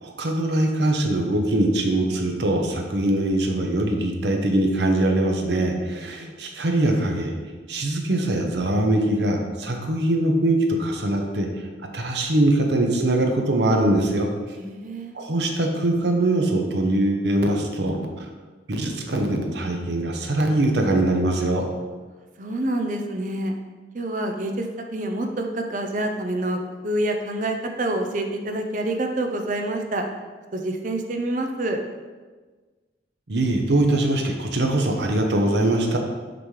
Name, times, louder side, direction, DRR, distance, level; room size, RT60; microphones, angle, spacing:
voice 1, 0.0-7.3 7.7-11.7 11.9-14.6 15.1-18.3 18.7-21.7 33.3-36.0, right 1 dB, 75° right, 3 dB, 0.8 m, -22 dB
voice 2, 5.9-6.3 14.5-15.2 22.4-23.5 23.9-30.1 30.5-31.8, right 1 dB, 45° right, 4 dB, 0.6 m, -27 dB
5.9 x 5.1 x 3.2 m, 1.4 s
head